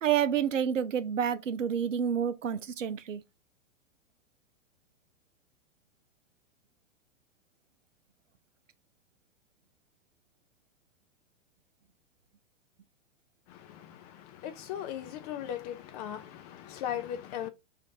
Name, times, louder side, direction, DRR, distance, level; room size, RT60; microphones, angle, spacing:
voice 1, 0.0-3.2, right 8 dB, 90° right, 0.8 m, -29 dB
voice 2, 13.5-17.5, left 10 dB, 35° left, 0.5 m, -38 dB
5.0 x 3.3 x 2.8 m
hypercardioid pair, 115°, 37 cm